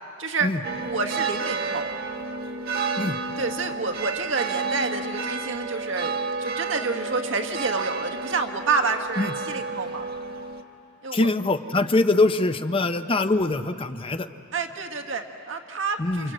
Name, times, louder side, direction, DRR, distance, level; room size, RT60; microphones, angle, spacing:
voice 1, 0.2-0.5 0.9-1.9 3.4-10.0 11.0-11.3 14.5-16.3, right 4 dB, 75° right, 4 dB, 1.7 m, -28 dB
sound 1, 0.6-10.6, right 4 dB, 50° right, 1.3 m, -31 dB
voice 2, 11.1-14.3 16.0-16.3, left 2 dB, 25° left, 9 dB, 0.7 m, -23 dB
29.0 x 26.0 x 7.8 m, 2.8 s
head